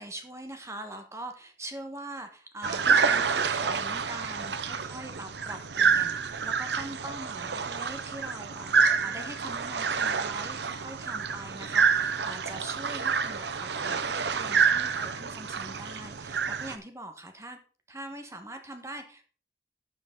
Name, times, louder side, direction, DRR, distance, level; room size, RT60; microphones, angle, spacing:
voice 1, 0.0-17.6 17.9-19.2, right 1 dB, 15° right, 6 dB, 1.3 m, -43 dB
sound 1, 2.6-16.8, right 5 dB, 75° right, 0.8 m, -28 dB
12.5 x 7.0 x 3.8 m, 0.39 s
head